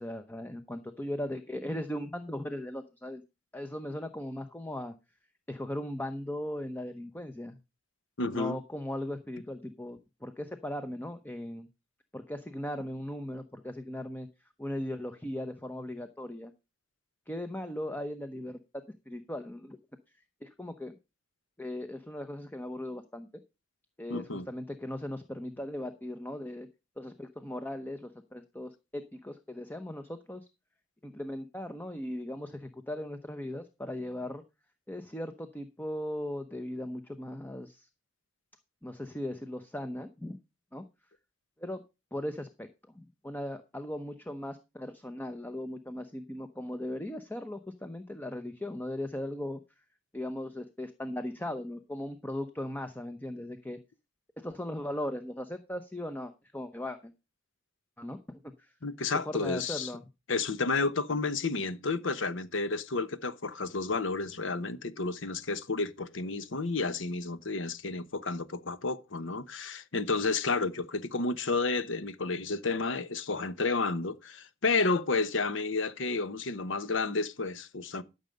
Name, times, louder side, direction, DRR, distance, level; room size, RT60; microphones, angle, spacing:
voice 1, 0.0-3.2 3.5-4.9 5.5-7.6 8.3-11.7 12.1-14.3 14.6-16.5 17.3-18.6 19.1-19.8 20.4-20.9 21.6-23.3 24.0-26.7 27.0-30.5 31.0-34.4 34.9-37.9 38.8-40.4 40.7-40.8 41.6-41.8 42.1-42.7 42.9-49.6 50.1-53.8 54.4-57.1 58.0-58.7 59.1-60.1, left 1 dB, 10° left, 0.8 m, -38 dB
voice 2, 8.2-8.6 24.1-24.5 58.8-59.9 60.3-78.0, left 3 dB, 70° left, 1.0 m, -31 dB
13.0 x 6.6 x 5.2 m
head